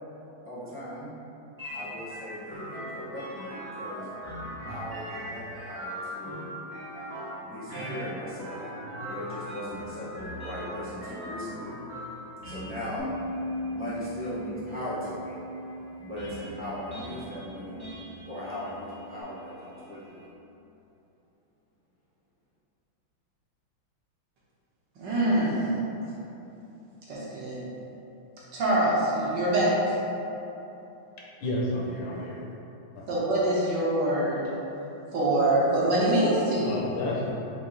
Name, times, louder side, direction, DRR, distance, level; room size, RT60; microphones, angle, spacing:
voice 1, 0.4-1.1 1.7-4.1 4.7-6.5 7.4-8.6 9.0-11.8 12.4-13.1 13.7-15.4 16.0-17.8 18.2-20.1, left 1 dB, 10° left, -12 dB, 0.6 m, -38 dB
sound 1, 1.6-20.3, equal, 35° right, 0.8 m, -41 dB
Bass guitar, 13.0-19.2, equal, 90° left, 1.8 m, -39 dB
voice 2, 25.0-25.7 27.1-27.6 28.5-30.0 33.1-34.4 35.1-36.8, right 1 dB, 65° right, -7 dB, 1.3 m, -24 dB
voice 3, 31.4-32.4 33.0-33.1 36.6-37.3, left 1 dB, 75° left, -4 dB, 1.2 m, -31 dB
4.9 x 2.7 x 3.7 m, 3.0 s
omnidirectional pair, 2.3 m